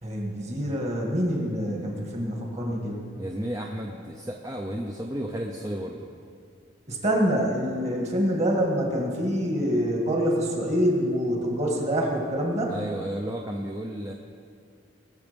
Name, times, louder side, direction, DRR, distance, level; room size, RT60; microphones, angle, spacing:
voice 1, 0.0-3.0 6.9-12.7, equal, 35° right, -1 dB, 2.0 m, -26 dB
voice 2, 3.2-6.1 12.7-14.1, equal, 15° right, 1 dB, 0.6 m, -33 dB
19.0 x 7.1 x 5.3 m, 2.3 s
head